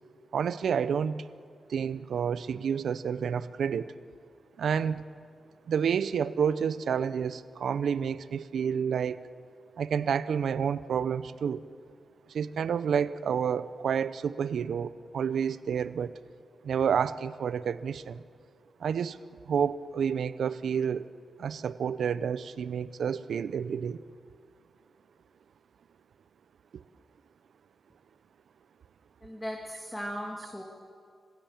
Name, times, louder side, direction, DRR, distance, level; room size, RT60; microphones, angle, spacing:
voice 1, 0.3-1.2 1.7-3.9 4.6-5.0 5.7-9.2 9.8-11.6 12.3-16.2 16.6-18.2 18.8-19.2 19.4-21.1 21.4-24.0 26.7-26.8, right 7 dB, 85° right, 15 dB, 0.6 m, -29 dB
voice 2, 29.2-30.6, equal, 10° left, 0 dB, 2.1 m, -37 dB
28.0 x 16.0 x 7.3 m, 2.3 s
wide cardioid pair, 100°, 0 cm